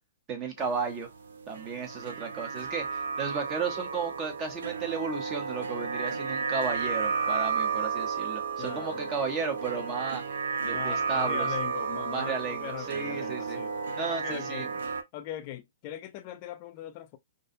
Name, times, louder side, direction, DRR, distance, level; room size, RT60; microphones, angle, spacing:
voice 1, 0.3-1.1 1.5-10.2 10.7-11.5 12.1-13.6 14.0-14.7, right 5 dB, 20° right, 0.6 m, -34 dB
sound 1, 0.6-15.0, right 5 dB, 85° right, 0.5 m, -33 dB
voice 2, 8.6-9.1 10.6-13.8 14.1-14.7 15.1-17.2, left 12 dB, 30° left, 0.4 m, -40 dB
2.5 x 2.1 x 2.6 m
hypercardioid pair, 170°, 0 cm